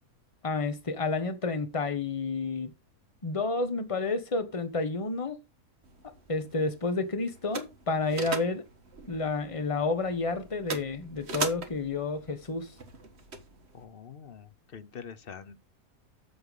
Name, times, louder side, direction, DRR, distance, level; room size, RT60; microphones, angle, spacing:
voice 1, 0.4-2.7 3.2-5.4 6.3-8.6 9.1-12.7, left 3 dB, 20° left, 1.3 m, -30 dB
sound 1, 5.8-13.8, right 4 dB, 45° right, 1.6 m, -41 dB
voice 2, 13.7-15.6, left 7 dB, 50° left, 0.8 m, -45 dB
7.9 x 7.0 x 5.4 m
omnidirectional pair, 1.6 m